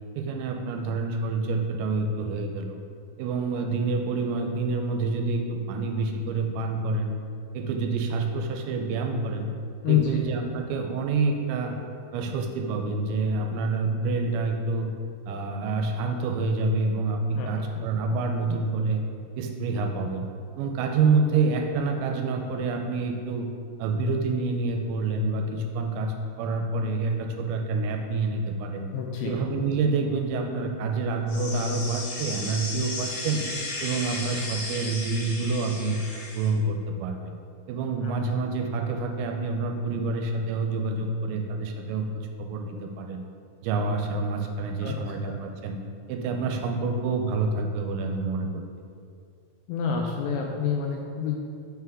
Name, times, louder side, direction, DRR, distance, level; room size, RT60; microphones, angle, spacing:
voice 1, 0.2-2.8 3.2-7.2 7.5-9.5 9.9-11.8 12.1-14.9 15.3-19.0 19.4-20.2 20.6-23.5 23.8-28.9 29.2-33.4 33.8-36.0 36.4-37.4 37.7-43.2 43.6-45.8 46.1-48.6, right 3 dB, 85° right, 4 dB, 2.8 m, -27 dB
voice 2, 28.9-29.4 38.0-38.2 44.8-45.4 49.7-51.4, left 8 dB, 85° left, 1 dB, 2.5 m, -27 dB
sound 1, 31.3-36.5, left 2 dB, 65° left, 2.3 m, -35 dB
6.5 x 4.5 x 3.5 m, 2.3 s
omnidirectional pair, 5.2 m